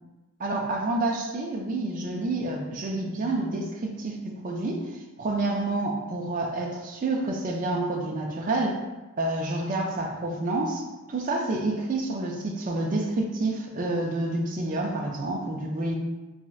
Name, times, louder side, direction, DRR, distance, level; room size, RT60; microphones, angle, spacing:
voice 1, 0.4-8.8 9.2-16.0, right 2 dB, 35° right, 1 dB, 0.3 m, -28 dB
3.0 x 2.7 x 2.3 m, 1.1 s
head